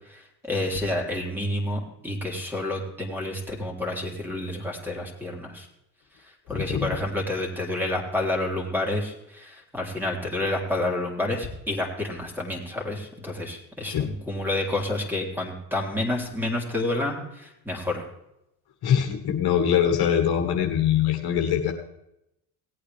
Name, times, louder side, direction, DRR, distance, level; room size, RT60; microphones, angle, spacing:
voice 1, 0.5-5.7 6.5-18.0, left 1 dB, 5° right, 0 dB, 3.6 m, -29 dB
voice 2, 6.5-7.0 13.9-14.1 18.8-21.7, left 9 dB, 55° left, 3 dB, 1.7 m, -23 dB
18.0 x 8.7 x 3.5 m, 0.81 s
supercardioid pair, 90°, 44 cm